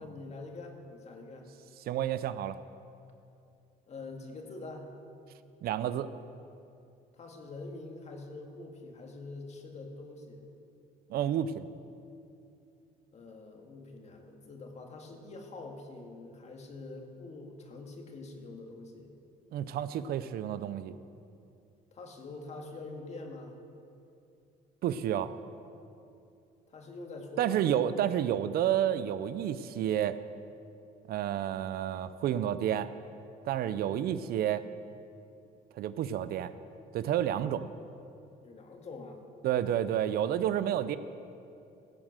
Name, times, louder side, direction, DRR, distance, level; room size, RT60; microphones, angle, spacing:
voice 1, 0.0-1.5 3.9-4.9 7.1-10.4 13.1-19.1 21.9-23.6 26.7-27.8 28.3-28.4 38.4-39.2, left 3 dB, 40° left, 3 dB, 1.8 m, -45 dB
voice 2, 1.9-2.6 5.6-6.1 11.1-11.7 19.5-21.0 24.8-25.3 27.4-30.2 31.1-32.9 33.4-34.6 35.7-36.5 36.9-37.7 39.4-41.0, right 10 dB, 65° right, 13 dB, 0.5 m, -30 dB
15.5 x 7.4 x 6.5 m, 2.6 s
cardioid pair, 110°, 17 cm